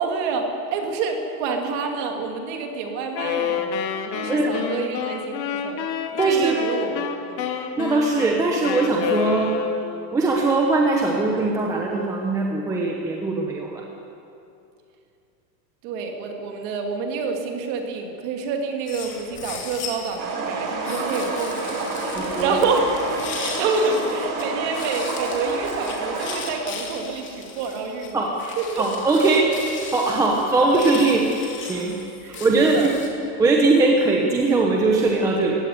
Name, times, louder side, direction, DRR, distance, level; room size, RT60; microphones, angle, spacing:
voice 1, 0.0-3.7 4.1-5.8 6.2-7.4 15.8-21.8 22.4-22.9 23.4-28.3 28.6-28.8 30.6-30.7 32.2-32.9, right 4 dB, 35° right, 3 dB, 2.7 m, -27 dB
Wind instrument woodwind instrument, 3.1-10.1, left 7 dB, 85° left, 2.8 m, -28 dB
voice 2, 6.2-6.6 7.8-9.5 10.1-13.8 22.1-22.6 28.1-28.3 28.8-29.5 29.9-31.3 31.6-32.0 32.4-32.9 33.4-35.6, right 3 dB, 5° right, 0 dB, 1.0 m, -20 dB
sound 1, 18.9-20.2 20.8-24.4 24.7-33.1, left 5 dB, 20° left, 3.0 m, -37 dB
sound 2, 20.2-26.6, right 3 dB, 90° right, 6.1 m, -28 dB
23.0 x 16.5 x 9.6 m, 2.7 s
supercardioid pair, 180°, 50 cm